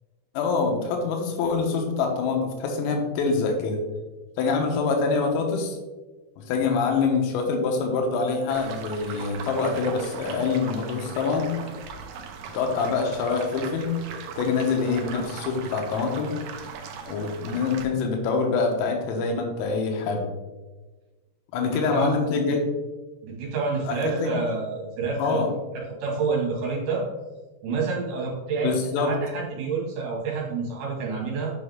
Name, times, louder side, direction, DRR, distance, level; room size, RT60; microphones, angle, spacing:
voice 1, 0.4-3.8 4.4-5.8 6.4-11.5 12.5-13.9 14.4-16.4 17.1-20.3 21.5-22.7 23.9-24.3 25.2-25.5 28.6-29.1, left 4 dB, 85° left, 3 dB, 3.7 m, -25 dB
sound 1, 8.5-17.9, right 6 dB, 85° right, 2.2 m, -39 dB
voice 2, 21.6-22.6 23.2-25.4 26.0-27.0 27.6-28.7 29.0-31.5, right 4 dB, 60° right, -4 dB, 4.0 m, -28 dB
10.0 x 5.4 x 3.7 m, 1.2 s
omnidirectional pair, 5.9 m